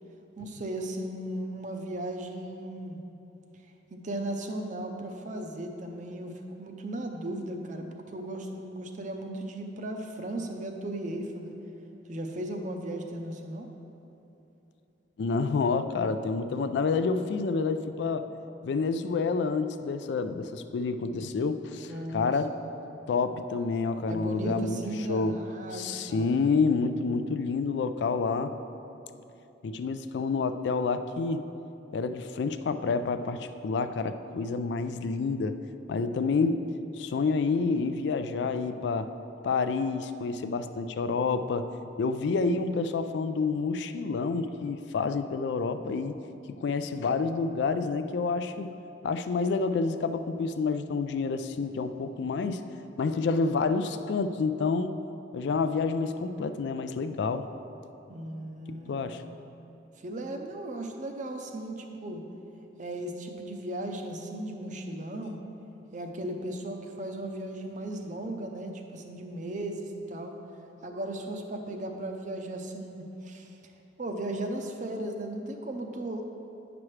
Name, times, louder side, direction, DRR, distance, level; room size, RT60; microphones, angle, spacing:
voice 1, 0.4-3.0 3.9-11.5 12.1-13.7 21.9-22.3 24.1-26.4 58.1-59.3 60.0-62.2 62.8-65.4 65.9-70.3 70.8-73.5 74.0-76.3, right 1 dB, 45° right, 4 dB, 0.6 m, -36 dB
voice 2, 15.2-18.3 18.6-22.5 23.1-24.8 25.1-25.4 25.7-28.5 29.6-31.4 31.9-35.6 35.9-36.6 37.0-39.1 39.4-41.7 42.0-46.2 46.6-48.7 49.0-52.6 53.0-55.0 55.3-57.5 58.9-59.2, left 4 dB, 70° left, 10 dB, 0.3 m, -28 dB
9.5 x 5.9 x 3.2 m, 3.0 s
head